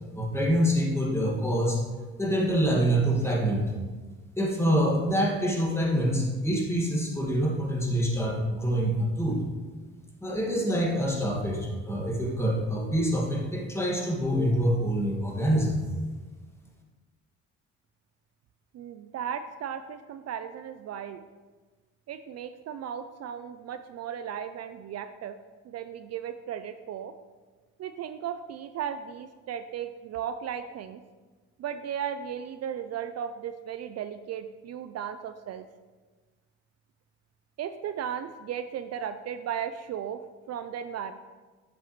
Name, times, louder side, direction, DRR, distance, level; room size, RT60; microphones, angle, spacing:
voice 1, 0.1-1.8 2.2-3.7 4.4-9.4 10.2-15.8, equal, 10° left, -2 dB, 1.8 m, -26 dB
voice 2, 18.7-21.2 22.1-25.4 25.6-27.1 27.8-31.0 31.6-35.7 37.6-40.2 40.5-41.1, right 8 dB, 60° right, 10 dB, 0.4 m, -36 dB
7.6 x 7.1 x 3.1 m, 1.3 s
cardioid pair, 90°, 30 cm